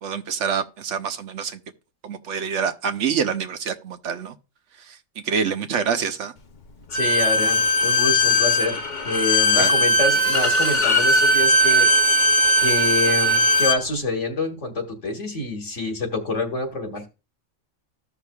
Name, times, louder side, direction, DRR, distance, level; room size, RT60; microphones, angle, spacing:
voice 1, 0.0-1.6 2.0-4.3 4.8-5.0 5.2-6.3 9.5-9.7, right 6 dB, 70° right, 1.1 m, -26 dB
voice 2, 6.9-8.8 9.0-12.1 12.6-17.1, left 2 dB, 65° left, 2.0 m, -27 dB
Bowed string instrument, 6.9-13.8, equal, 45° left, 0.8 m, -19 dB
14.5 x 5.8 x 2.3 m
omnidirectional pair, 1.3 m